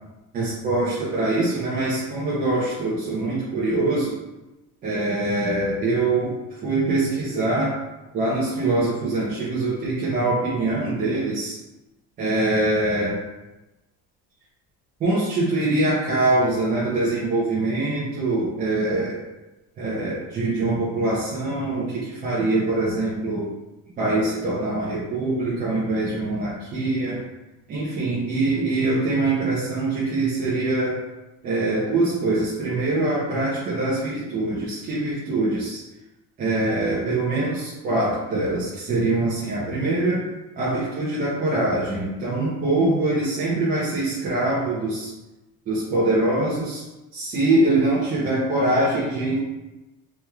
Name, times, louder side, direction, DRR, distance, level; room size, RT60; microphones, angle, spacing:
voice 1, 0.3-4.1 4.8-6.3 6.6-7.7 8.1-11.6 12.2-13.2 15.0-19.2 19.8-23.5 24.0-27.2 27.7-31.0 31.4-35.8 36.4-40.2 40.6-45.1 45.7-46.8 47.1-49.4, right 2 dB, 25° right, -9 dB, 0.6 m, -23 dB
3.4 x 3.1 x 2.2 m, 1.0 s
cardioid pair, 170°, 37 cm